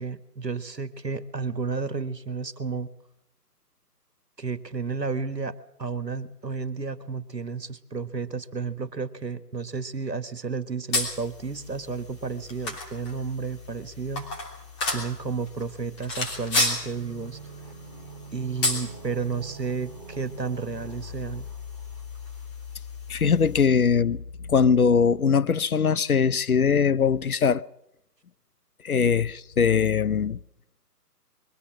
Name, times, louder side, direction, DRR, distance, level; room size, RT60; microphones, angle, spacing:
voice 1, 0.0-2.9 4.4-14.3 14.9-17.4 18.3-21.5, right 5 dB, 85° right, 1.6 m, -32 dB
sound 1, 10.9-23.6, left 2 dB, 15° left, 3.1 m, -33 dB
sound 2, 16.7-22.4 22.7-22.8, right 6 dB, 20° right, 1.1 m, -46 dB
voice 2, 23.1-24.2 24.5-27.6 28.8-30.4, left 6 dB, 60° left, 0.7 m, -21 dB
22.5 x 16.0 x 7.4 m
figure-of-eight pair, 150°, 48 cm